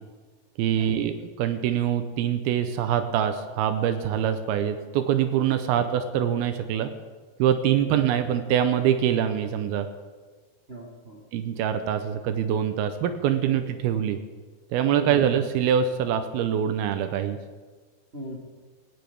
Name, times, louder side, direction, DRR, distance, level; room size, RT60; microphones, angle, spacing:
voice 1, 0.6-6.9 7.4-9.9 11.3-14.2 14.7-17.4, right 9 dB, 85° right, 9 dB, 2.6 m, -24 dB
voice 2, 7.8-8.2 10.7-11.2 14.9-15.3 18.1-18.4, right 1 dB, 40° right, -3 dB, 0.8 m, -39 dB
17.5 x 17.0 x 3.5 m, 1.4 s
omnidirectional pair, 4.5 m